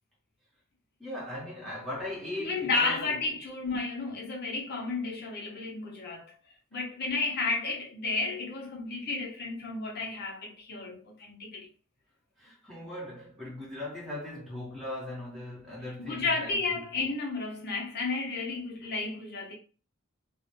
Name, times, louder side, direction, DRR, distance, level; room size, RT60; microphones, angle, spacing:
voice 1, 1.0-3.2 12.4-16.8, left 1 dB, ahead, 0.8 m, -39 dB
voice 2, 2.4-6.3 6.7-11.7 16.0-19.6, left 3 dB, 50° left, 0.6 m, -32 dB
2.4 x 2.0 x 2.9 m
head